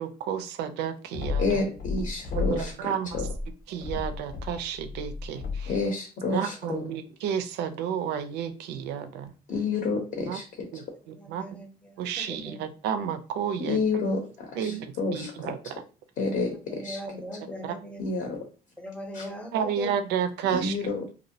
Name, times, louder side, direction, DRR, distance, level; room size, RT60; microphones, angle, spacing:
voice 1, 0.0-1.6 2.3-3.3 3.7-5.8 6.3-9.3 10.3-10.4 10.7-11.5 12.0-13.8 14.6-15.8 17.6-17.7 19.5-20.9, right 8 dB, 85° right, 10 dB, 0.4 m, -31 dB
sound 1, 1.1-2.7 3.0-5.8, left 4 dB, 85° left, 0.9 m, -33 dB
voice 2, 1.4-2.7 3.1-3.2 5.7-6.8 9.5-10.7 13.6-15.3 16.2-17.0 18.0-18.4 19.1-19.2 20.5-21.0, left 3 dB, 55° left, 3 dB, 0.6 m, -29 dB
voice 3, 11.2-12.6 16.7-18.0 18.8-19.9, equal, 5° left, 3 dB, 0.6 m, -40 dB
2.5 x 2.0 x 2.6 m, 0.35 s
cardioid pair, 110°, 17 cm